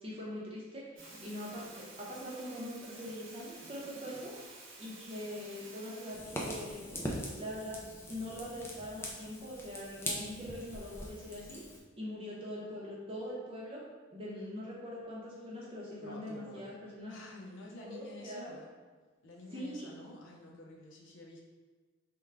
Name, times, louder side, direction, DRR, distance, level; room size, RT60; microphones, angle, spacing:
voice 1, 0.0-6.9 7.4-11.7 11.9-13.8 14.1-17.1 17.8-18.5 19.5-19.9, equal, 25° right, -5 dB, 0.7 m, -43 dB
sound 1, 1.0-6.2, right 2 dB, 70° right, 0.7 m, -51 dB
Fire, 6.1-11.8, left 1 dB, 10° left, 0.3 m, -42 dB
voice 2, 16.0-16.7 17.1-18.8 19.2-21.5, left 2 dB, 65° left, -1 dB, 0.5 m, -49 dB
3.6 x 2.2 x 3.3 m, 1.4 s
head